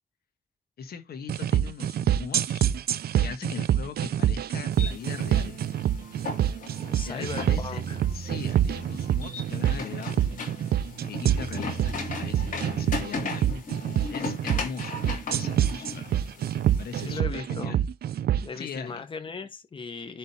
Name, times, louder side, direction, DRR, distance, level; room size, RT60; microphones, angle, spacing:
voice 1, 0.8-2.7 3.2-5.6 7.0-7.8 8.1-10.5 11.0-13.5 14.1-16.3 16.7-17.8 18.6-19.0, left 6 dB, 70° left, 1.5 m, -40 dB
sound 1, 1.3-18.5, right 10 dB, 70° right, 0.5 m, -26 dB
sound 2, 4.7-17.2, left 4 dB, 55° left, 3.1 m, -38 dB
sound 3, 5.3-13.4, right 5 dB, 90° right, 1.5 m, -41 dB
voice 2, 6.8-8.0 17.1-17.8 18.4-20.2, left 4 dB, 30° left, 1.2 m, -38 dB
10.5 x 3.6 x 4.2 m
wide cardioid pair, 165°, 17 cm